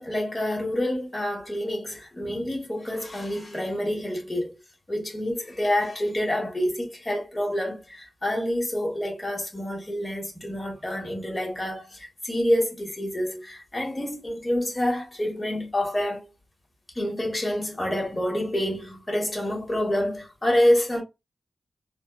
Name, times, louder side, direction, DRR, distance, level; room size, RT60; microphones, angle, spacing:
voice 1, 0.0-4.5 4.9-16.3 16.9-21.0, left 1 dB, 25° left, 1.4 m, -27 dB
3.3 x 2.2 x 2.3 m
cardioid pair, 60°, 0 cm